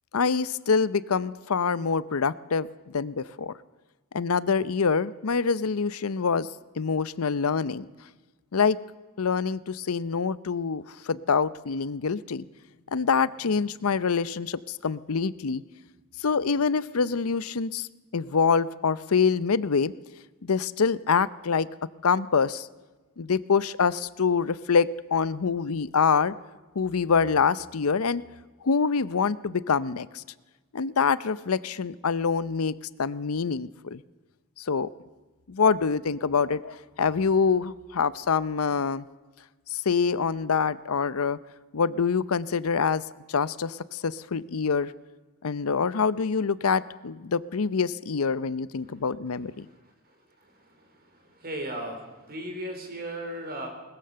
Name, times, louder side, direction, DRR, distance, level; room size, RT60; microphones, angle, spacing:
voice 1, 0.1-2.7 2.9-3.5 4.1-6.5 6.8-7.9 8.5-8.8 9.2-12.4 12.9-15.6 16.2-17.9 18.1-19.9 20.4-21.7 22.0-22.7 23.2-26.3 26.8-28.2 28.6-30.2 30.7-34.0 34.6-34.9 35.5-39.1 39.7-41.4 41.7-43.0 43.3-44.9 45.4-49.7, left 5 dB, 85° left, 17 dB, 0.7 m, -25 dB
voice 2, 51.4-52.0 52.3-53.7, right 1 dB, 45° right, 3 dB, 4.4 m, -35 dB
21.0 x 20.0 x 6.8 m, 1.2 s
head